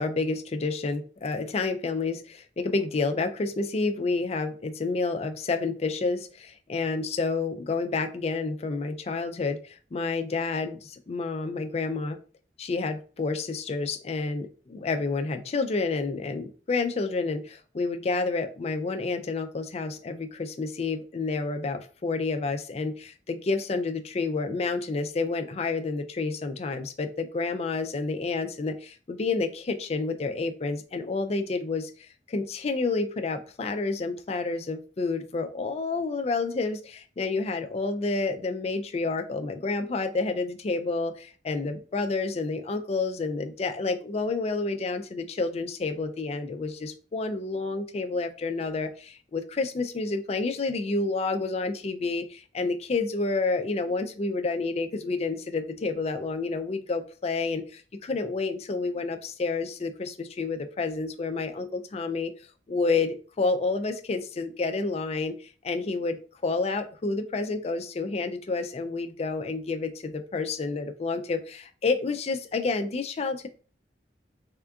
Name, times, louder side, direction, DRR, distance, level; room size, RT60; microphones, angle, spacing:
voice 1, 0.0-12.2 12.6-62.3 62.7-66.2 66.4-73.5, left 3 dB, 35° left, 8 dB, 0.4 m, -29 dB
3.5 x 2.4 x 3.4 m, 0.38 s
head